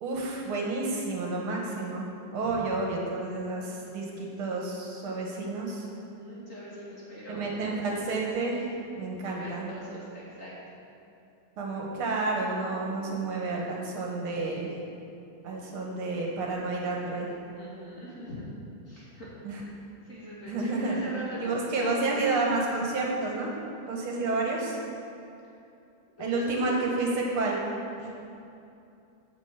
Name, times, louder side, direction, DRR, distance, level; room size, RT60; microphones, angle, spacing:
voice 1, 0.0-5.9 7.4-8.7 9.0-9.7 11.6-14.7 15.4-17.3 19.4-19.6 20.5-21.1 21.4-23.5 23.8-24.8 26.2-27.6 28.0-28.1, right 3 dB, 80° right, -2 dB, 2.4 m, -30 dB
voice 2, 5.9-7.5 9.2-10.8 17.5-18.5 18.9-19.8 20.0-22.1 26.2-26.3 26.6-27.0, equal, 35° left, -7 dB, 2.8 m, -42 dB
9.3 x 6.3 x 8.1 m, 2.7 s
omnidirectional pair, 2.3 m